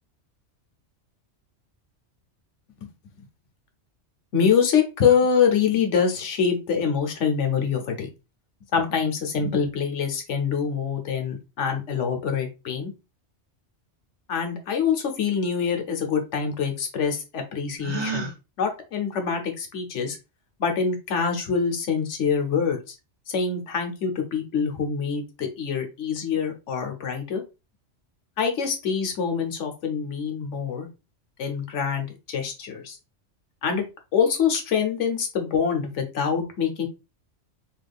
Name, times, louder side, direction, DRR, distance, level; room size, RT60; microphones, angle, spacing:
voice 1, 4.3-8.1 8.7-12.9 14.3-18.3 18.6-20.2 20.6-22.9 23.3-27.4 28.4-30.9 31.4-33.0 33.6-33.8 34.1-36.9, left 6 dB, 75° left, 4 dB, 1.1 m, -25 dB
Gasp, 17.8-18.4, right 5 dB, 40° right, 0.4 m, -30 dB
3.1 x 2.4 x 3.4 m, 0.28 s
omnidirectional pair, 1.2 m